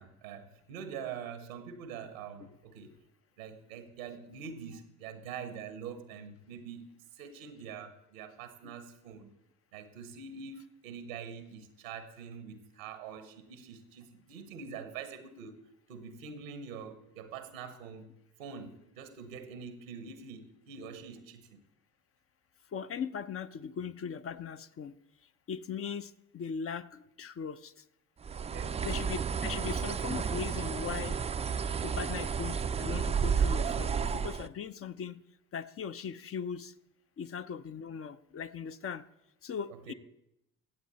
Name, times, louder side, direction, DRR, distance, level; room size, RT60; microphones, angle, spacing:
voice 1, 0.0-2.9 3.4-6.9 7.1-9.3 9.7-15.6 15.9-18.1 18.4-21.6 28.3-28.9 39.7-39.9, right 6 dB, 90° right, 10 dB, 1.0 m, -45 dB
voice 2, 22.7-24.9 25.5-27.8 28.8-31.2 31.8-35.2 35.5-36.7 37.2-39.0 39.4-39.9, left 7 dB, 35° left, 13 dB, 0.6 m, -39 dB
Bird, 28.2-34.5, right 6 dB, 15° right, 0.4 m, -32 dB
16.5 x 7.7 x 4.1 m, 0.86 s
hypercardioid pair, 60°, 38 cm